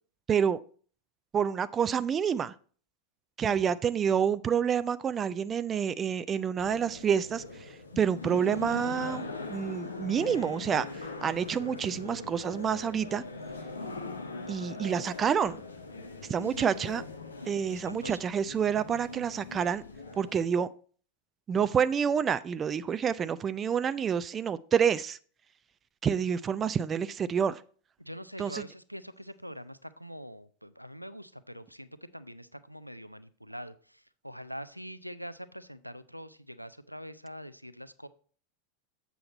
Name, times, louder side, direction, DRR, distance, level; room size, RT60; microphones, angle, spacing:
voice 1, 0.3-0.6 1.3-2.5 3.4-7.4 8.0-13.2 14.5-15.6 16.3-17.0 17.5-19.8 20.2-20.7 21.5-25.2 26.0-27.6 28.4-28.6, right 7 dB, 25° right, 0.4 m, -28 dB
sound 1, 6.6-20.5, left 3 dB, 75° left, 1.2 m, -41 dB
voice 2, 17.7-18.2 28.0-38.1, equal, 90° right, 0.5 m, -44 dB
7.7 x 7.0 x 4.1 m
figure-of-eight pair, 90°, 0 cm